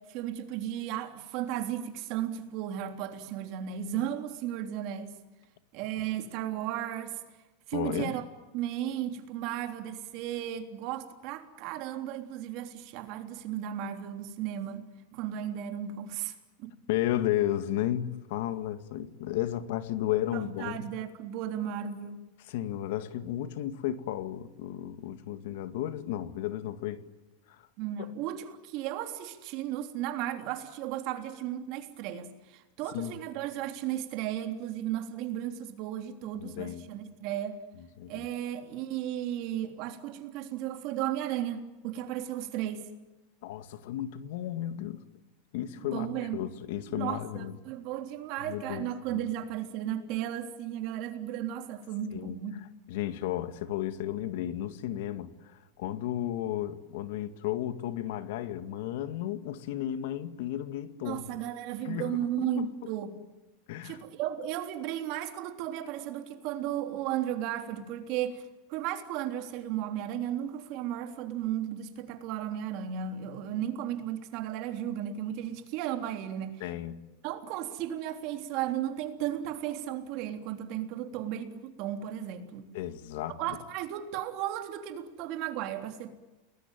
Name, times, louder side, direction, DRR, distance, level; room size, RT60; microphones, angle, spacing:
voice 1, 0.1-5.1 5.7-7.2 7.7-8.2 8.5-14.8 15.1-16.7 20.3-22.2 27.8-37.6 38.1-42.9 45.8-46.4 46.9-52.6 61.0-63.2 63.8-76.6 77.2-82.7 83.4-86.1, right 11 dB, 45° right, 3.4 m, -35 dB
voice 2, 7.7-8.1 16.9-20.8 22.4-27.1 27.5-27.6 28.0-28.1 32.9-33.2 36.4-36.9 38.0-38.3 43.4-45.0 45.5-46.1 46.3-47.5 48.5-49.2 52.1-52.4 52.9-61.2 61.8-62.1 62.4-62.7 63.7-64.0 76.6-77.0 82.7-83.4, left 12 dB, 65° left, 2.0 m, -33 dB
29.5 x 20.5 x 9.2 m
supercardioid pair, 155°, 0 cm